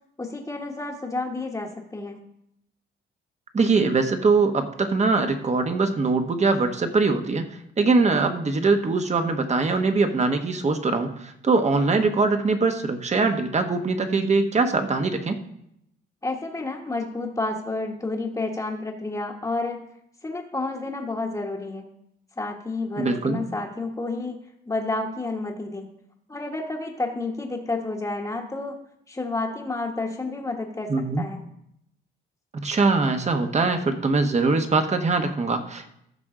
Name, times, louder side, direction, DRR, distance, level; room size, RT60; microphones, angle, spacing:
voice 1, 0.2-2.2 16.2-19.8 20.2-21.8 22.4-24.4 24.7-25.9 26.3-28.8 29.1-30.9 31.2-31.4, left 2 dB, 15° left, -4 dB, 1.2 m, -30 dB
voice 2, 3.5-7.4 7.8-15.4 23.0-23.4 30.9-31.3 32.5-35.9, right 3 dB, 35° right, 6 dB, 1.1 m, -22 dB
15.0 x 6.1 x 3.8 m, 0.77 s
cardioid pair, 90°, 20 cm